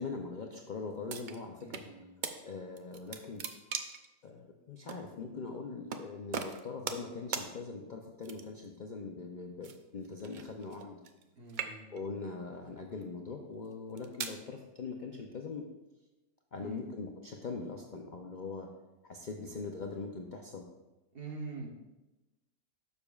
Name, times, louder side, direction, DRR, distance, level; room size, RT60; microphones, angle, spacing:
voice 1, 0.0-1.8 2.2-3.4 4.2-11.0 11.9-15.7 16.5-18.7 19.0-20.6, left 4 dB, 50° left, 2 dB, 0.5 m, -42 dB
sound 1, 1.1-1.9 2.2-2.4 2.8-4.1 4.9-5.0 5.9-6.0 6.3-7.1 7.3-7.5 8.2-8.7 9.6-11.2 11.5-12.1 12.8-13.0 13.7-14.4, right 6 dB, 65° right, 0.4 m, -39 dB
voice 2, 1.6-2.2 11.4-12.0 16.6-16.9 19.4-19.5 21.1-21.7, right 3 dB, 45° right, -1 dB, 1.3 m, -45 dB
12.0 x 6.8 x 2.4 m, 1.1 s
omnidirectional pair, 1.5 m